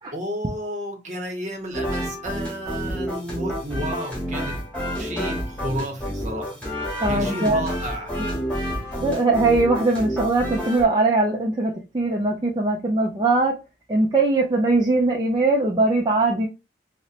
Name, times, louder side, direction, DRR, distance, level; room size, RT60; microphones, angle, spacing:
voice 1, 0.1-4.6 5.0-6.6 7.1-8.1, right 1 dB, 45° right, 0.8 m, -32 dB
sound 1, 1.7-10.8, equal, 5° left, 1.2 m, -29 dB
voice 2, 7.0-7.6 9.0-13.5 13.9-16.5, right 2 dB, 25° right, 0.4 m, -21 dB
4.0 x 2.1 x 2.4 m
head